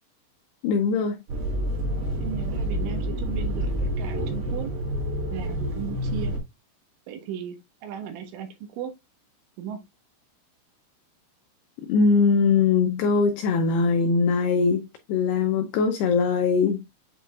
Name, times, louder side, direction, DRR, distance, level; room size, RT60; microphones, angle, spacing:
voice 1, 0.6-1.2 11.9-14.8 15.1-16.8, left 5 dB, 85° left, 2.3 m, -21 dB
sound 1, 1.3-6.4, equal, 55° right, 4.3 m, -28 dB
voice 2, 2.2-4.7 5.3-6.4 7.1-8.9 9.6-9.8, right 8 dB, 75° right, 3.7 m, -36 dB
8.9 x 4.6 x 2.4 m
omnidirectional pair, 5.7 m